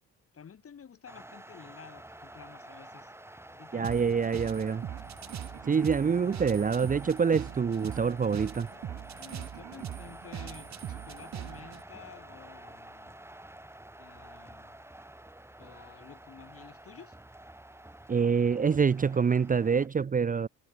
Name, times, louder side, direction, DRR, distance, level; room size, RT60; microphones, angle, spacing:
voice 1, 0.3-3.1 3.5-4.3 9.2-13.2 14.0-14.8 15.6-17.2, left 7 dB, 50° left, 5.6 m, -51 dB
sound 1, 1.1-19.9, right 1 dB, 10° right, 3.8 m, -49 dB
voice 2, 3.7-4.8 5.7-8.7 18.1-20.5, right 6 dB, 25° right, 0.7 m, -26 dB
sound 2, 3.8-11.8, right 10 dB, 65° right, 4.0 m, -41 dB
cardioid pair, 90°, 30 cm